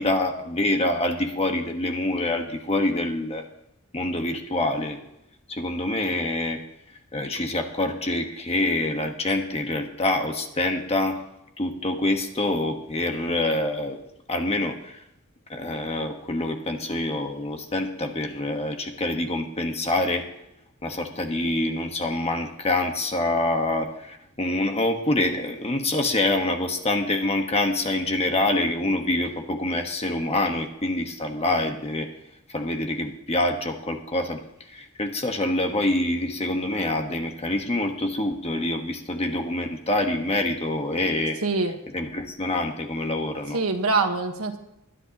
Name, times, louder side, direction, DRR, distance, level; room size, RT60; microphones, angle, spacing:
voice 1, 0.0-3.4 3.9-5.0 5.5-6.6 7.1-11.2 11.6-14.0 14.3-15.0 15.5-20.3 20.8-32.1 32.5-34.4 34.7-41.4 41.9-43.6, left 2 dB, 30° left, 4 dB, 1.4 m, -26 dB
voice 2, 41.4-41.8 43.5-44.6, right 3 dB, 75° right, 5 dB, 1.5 m, -24 dB
21.0 x 11.0 x 3.0 m, 0.83 s
head